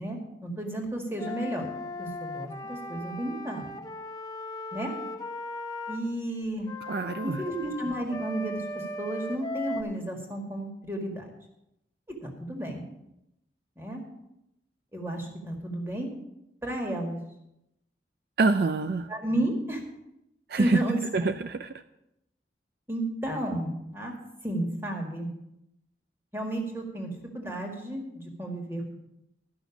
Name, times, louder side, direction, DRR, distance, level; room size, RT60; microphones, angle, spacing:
voice 1, 0.0-1.7 2.0-3.7 4.7-4.9 5.9-6.7 7.2-11.3 12.1-12.8 13.8-14.0 14.9-16.1 16.6-17.2 19.1-19.8 20.6-21.0 22.9-24.1 24.4-25.3 26.3-29.0, right 1 dB, 15° right, 2 dB, 1.8 m, -32 dB
Wind instrument woodwind instrument, 1.2-6.0 6.7-9.8, left 2 dB, 20° left, 0.7 m, -38 dB
voice 2, 6.9-7.4 18.4-19.1 20.5-20.8 21.1-21.7, right 3 dB, 60° right, 10 dB, 0.4 m, -26 dB
12.0 x 6.1 x 7.1 m, 0.86 s
head